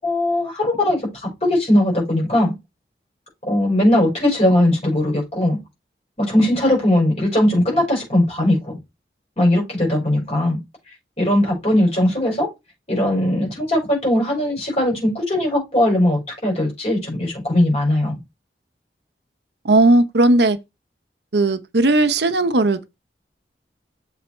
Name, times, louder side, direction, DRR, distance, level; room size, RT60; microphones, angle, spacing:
voice 1, 0.0-2.5 3.4-5.6 6.2-8.8 9.4-10.6 11.2-12.5 12.9-18.1, left 1 dB, 35° left, 5.2 m, -19 dB
voice 2, 19.6-20.6 21.3-22.9, right 2 dB, 75° right, 0.8 m, -16 dB
7.1 x 4.0 x 4.4 m
head